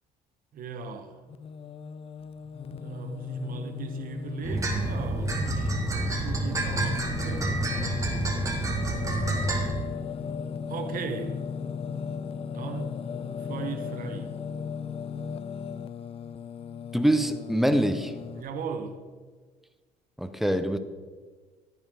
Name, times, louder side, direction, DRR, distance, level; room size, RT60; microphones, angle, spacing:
voice 1, 0.5-1.2 2.7-8.1 10.7-11.4 12.5-12.9 13.4-14.3 18.3-19.0, right 4 dB, 55° right, 1.2 m, -37 dB
Singing, 1.3-18.4, left 6 dB, 35° left, 0.4 m, -36 dB
sound 1, 4.4-9.7, right 2 dB, 20° right, 1.8 m, -28 dB
voice 2, 16.9-18.1 20.2-20.8, right 1 dB, ahead, 0.7 m, -24 dB
11.5 x 10.0 x 3.7 m
cardioid pair, 110°, 17 cm